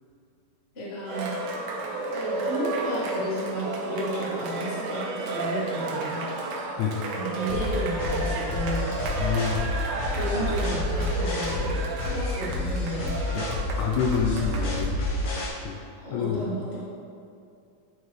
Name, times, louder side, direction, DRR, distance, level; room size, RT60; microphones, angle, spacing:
voice 1, 0.7-1.4 2.1-6.3 7.1-9.0 10.1-11.8 12.0-13.4 16.0-16.8, right 1 dB, 40° left, -8 dB, 0.8 m, -33 dB
Cheering, 1.1-14.9, right 2 dB, 75° right, 2.1 m, -32 dB
sound 1, 7.5-15.5, left 2 dB, 60° left, 1.4 m, -29 dB
voice 2, 9.2-9.6 13.4-13.5 13.8-15.0 15.6-15.8 16.1-16.5, left 6 dB, 80° left, -1 dB, 1.7 m, -27 dB
10.5 x 4.6 x 3.1 m, 2.5 s
omnidirectional pair, 3.9 m